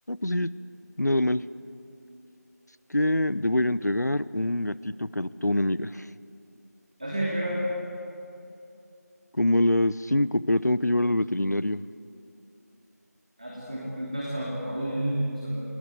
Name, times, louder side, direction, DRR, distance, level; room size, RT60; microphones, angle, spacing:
voice 1, 0.1-0.5 1.0-1.4 2.9-6.0 9.4-11.8, left 1 dB, 75° left, 17 dB, 0.9 m, -25 dB
voice 2, 7.0-7.6 13.4-15.6, right 1 dB, 25° right, -4 dB, 2.9 m, -30 dB
28.5 x 19.0 x 9.4 m, 2.8 s
figure-of-eight pair, 175°, 9 cm